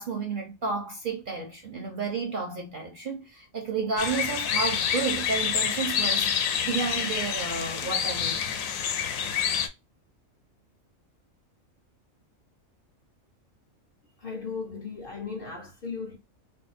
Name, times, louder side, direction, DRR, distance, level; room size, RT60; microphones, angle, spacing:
voice 1, 0.0-8.4, right 4 dB, 55° right, 0.6 m, -31 dB
sound 1, 4.0-9.7, left 8 dB, 80° left, 1.0 m, -27 dB
voice 2, 14.2-16.2, left 5 dB, 55° left, 0.7 m, -36 dB
2.6 x 2.2 x 4.0 m
omnidirectional pair, 1.4 m